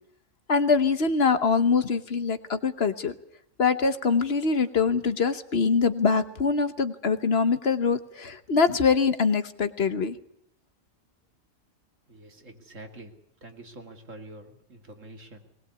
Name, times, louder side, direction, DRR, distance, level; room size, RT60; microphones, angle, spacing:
voice 1, 0.5-3.1 3.6-10.2, left 5 dB, 55° left, 11 dB, 1.3 m, -24 dB
voice 2, 12.1-13.1 13.4-15.6, right 1 dB, 85° right, 4 dB, 2.9 m, -46 dB
20.5 x 20.5 x 8.4 m, 0.72 s
omnidirectional pair, 1.3 m